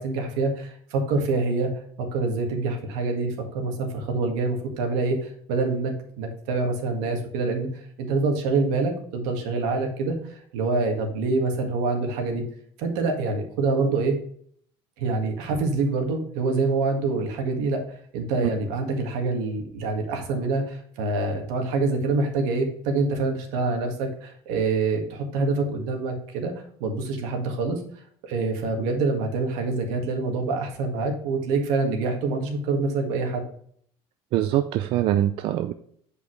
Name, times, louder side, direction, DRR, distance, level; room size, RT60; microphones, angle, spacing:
voice 1, 0.0-1.7 2.0-12.4 12.8-14.1 15.0-17.8 18.1-26.5 26.8-27.8 28.2-33.4, right 3 dB, 80° right, 3 dB, 1.8 m, -26 dB
voice 2, 34.3-35.7, right 12 dB, 45° right, 9 dB, 0.4 m, -23 dB
8.4 x 5.3 x 3.2 m, 0.62 s
cardioid pair, 175°, 12 cm